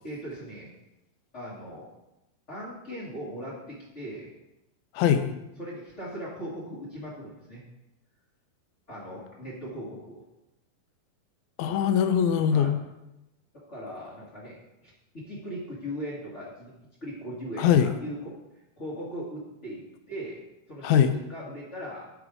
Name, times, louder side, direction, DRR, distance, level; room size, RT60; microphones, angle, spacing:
voice 1, 0.0-0.7 1.3-1.8 2.5-4.3 5.6-7.6 8.9-10.2 12.5-12.7 13.5-16.7 17.0-18.3 18.8-20.4 20.7-22.1, equal, 40° left, -8 dB, 0.9 m, -39 dB
voice 2, 5.0-5.4 11.6-12.8 17.6-17.9 20.8-21.1, left 8 dB, 85° left, 9 dB, 2.4 m, -22 dB
9.7 x 5.1 x 4.9 m, 0.94 s
omnidirectional pair, 4.4 m